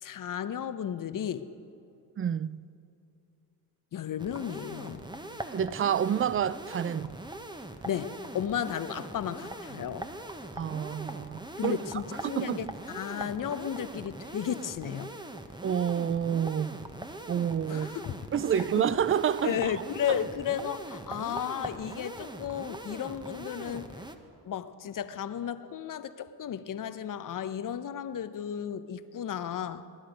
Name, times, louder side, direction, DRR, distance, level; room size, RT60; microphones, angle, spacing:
voice 1, 0.0-1.5 3.9-5.0 7.8-10.1 11.6-15.1 17.7-18.2 18.6-18.9 19.4-23.9 24.5-29.9, left 9 dB, 40° left, 0.9 m, -34 dB
voice 2, 2.2-2.7 5.5-7.2 10.6-11.8 12.2-12.7 15.6-16.9 17.3-18.0 18.3-19.7 20.1-20.2, right 8 dB, 30° right, 0.5 m, -29 dB
sound 1, 4.2-24.1, right 1 dB, 10° right, 1.2 m, -42 dB
22.0 x 11.5 x 5.2 m
hypercardioid pair, 60°, 47 cm